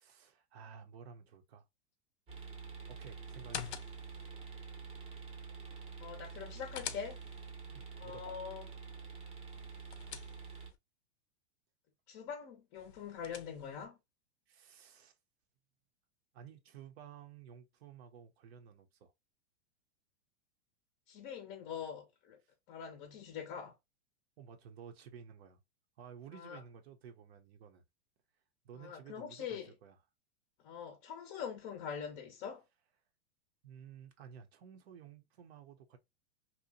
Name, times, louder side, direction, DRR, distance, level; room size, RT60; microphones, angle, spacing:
voice 1, 0.0-1.7 2.4-2.5 2.9-3.9 7.7-8.4 14.5-15.2 16.3-19.1 22.4-22.5 24.4-25.6 26.0-27.8 28.6-30.0 33.6-36.0, right 7 dB, 65° right, 0.6 m, -54 dB
sound 1, 2.3-10.7, right 5 dB, 20° right, 0.6 m, -48 dB
sound 2, 3.3-4.3 6.2-7.5 9.5-10.8 12.7-13.9, left 10 dB, 80° left, 0.5 m, -47 dB
voice 2, 6.0-7.2 8.0-8.7 12.1-14.0 21.1-22.4 22.7-23.7 26.3-26.6 28.8-29.7 30.6-32.6, left 7 dB, 35° left, 0.5 m, -43 dB
2.7 x 2.1 x 2.5 m
supercardioid pair, 140°, 33 cm